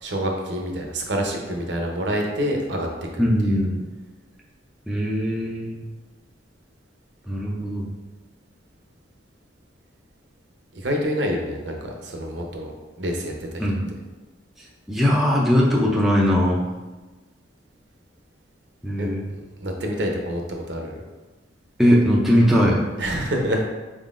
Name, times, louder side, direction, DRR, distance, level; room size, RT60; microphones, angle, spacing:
voice 1, 0.0-2.9 3.1-3.6 10.7-13.6 19.0-19.1 19.6-21.0 23.0-23.6, equal, 60° right, 2 dB, 0.7 m, -27 dB
voice 2, 3.2-3.8 4.9-5.8 7.3-7.9 13.6-13.9 14.9-16.6 18.8-19.2 21.8-22.8, equal, ahead, -4 dB, 0.4 m, -20 dB
4.4 x 3.7 x 2.4 m, 1.2 s
head